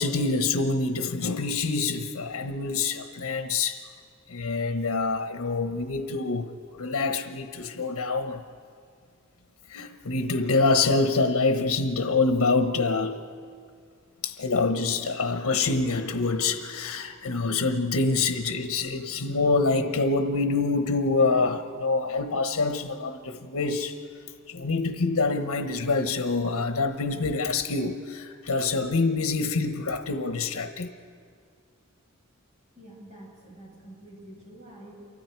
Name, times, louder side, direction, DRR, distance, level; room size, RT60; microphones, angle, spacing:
voice 1, 0.0-3.8 4.3-8.4 9.7-13.2 14.2-24.0 24.5-30.9, left 3 dB, 85° left, 7 dB, 1.1 m, -26 dB
voice 2, 32.8-34.9, right 1 dB, 35° right, -4 dB, 7.7 m, -47 dB
28.5 x 24.5 x 4.6 m, 2.2 s
head